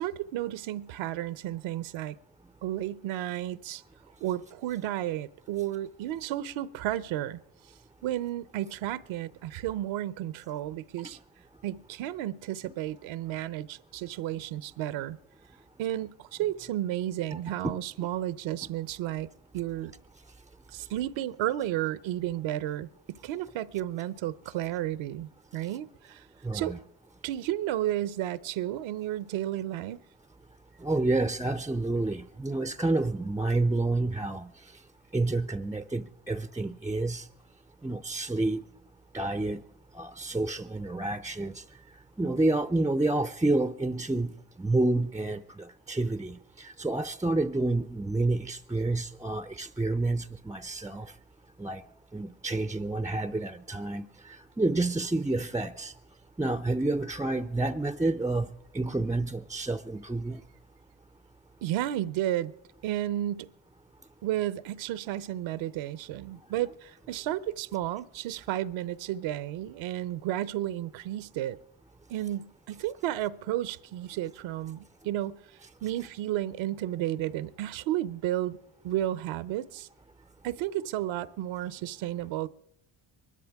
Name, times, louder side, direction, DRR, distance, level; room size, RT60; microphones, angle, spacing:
voice 1, 0.0-2.2 2.6-3.8 4.2-7.4 8.0-11.2 11.6-15.2 15.8-19.3 19.5-19.9 20.7-26.3 26.5-26.8 27.2-30.0 61.6-62.5 62.8-63.5 64.2-71.6 72.1-78.6 78.8-79.9 80.4-82.5, right 13 dB, 70° right, 0.7 m, -32 dB
voice 2, 26.4-26.8 30.8-34.5 35.1-37.3 37.8-38.6 39.1-39.6 39.9-41.6 42.2-51.1 51.6-51.8 52.1-55.9 56.4-60.4, right 2 dB, 5° right, 0.4 m, -29 dB
23.5 x 13.0 x 3.5 m
supercardioid pair, 70°, 48 cm